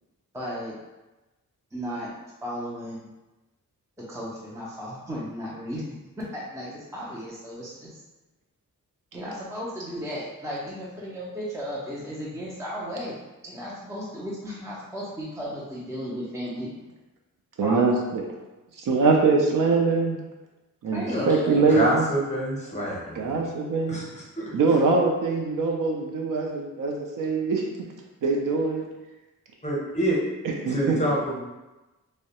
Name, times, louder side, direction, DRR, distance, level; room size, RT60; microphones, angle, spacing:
voice 1, 0.3-0.8 1.7-2.1 2.4-3.1 4.1-8.0 9.1-13.2 13.4-16.7 17.6-18.0 20.9-21.6, equal, 10° right, -6 dB, 0.4 m, -35 dB
voice 2, 17.6-18.2 18.9-20.2 20.8-22.1 23.2-24.0 24.5-27.6 28.2-28.8 30.4-31.0, right 4 dB, 70° right, 0 dB, 0.5 m, -23 dB
voice 3, 21.0-21.4 21.7-23.3 23.9-24.5 29.6-30.2 30.7-31.4, right 1 dB, 20° left, -5 dB, 0.7 m, -27 dB
2.3 x 2.1 x 2.8 m, 1.1 s
wide cardioid pair, 95°, 34 cm